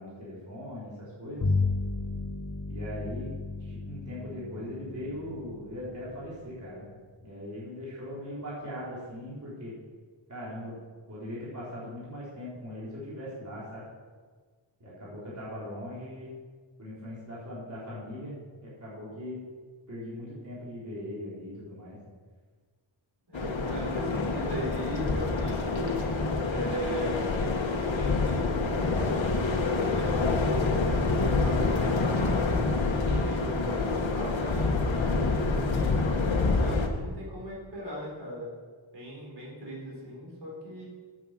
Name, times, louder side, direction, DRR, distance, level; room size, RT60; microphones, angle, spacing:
voice 1, 0.0-1.5 2.7-3.3 3.6-6.9 7.2-9.7 10.3-10.7 11.1-13.9 14.8-16.3 16.8-19.4 19.9-22.0, left 1 dB, 40° right, -8 dB, 3.7 m, -40 dB
Bowed string instrument, 1.4-7.0, left 3 dB, 40° left, 1.2 m, -34 dB
sound 1, 23.3-36.9, left 3 dB, 70° left, 1.6 m, -27 dB
voice 2, 23.3-27.4 27.8-32.4 33.0-38.5 38.9-40.8, equal, 55° right, -4 dB, 4.3 m, -39 dB
10.0 x 8.0 x 7.4 m, 1.5 s
wide cardioid pair, 135°, 47 cm